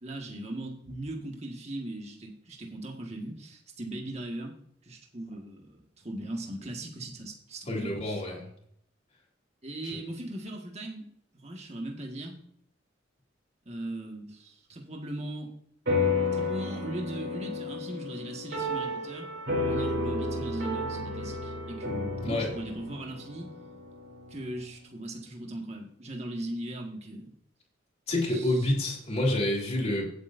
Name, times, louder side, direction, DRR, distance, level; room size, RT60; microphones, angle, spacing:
voice 1, 0.0-4.6 4.8-8.2 9.6-11.1 11.3-12.4 13.6-15.5 16.3-19.3 19.6-23.5 24.3-27.3 28.3-28.7, right 1 dB, 35° right, 1 dB, 1.7 m, -39 dB
voice 2, 7.7-8.5 9.8-10.0 22.2-22.5 28.1-30.1, left 1 dB, 35° left, -4 dB, 3.3 m, -28 dB
sound 1, 15.9-24.6, left 2 dB, 60° right, 4.6 m, -32 dB
17.0 x 7.9 x 2.6 m, 0.69 s
head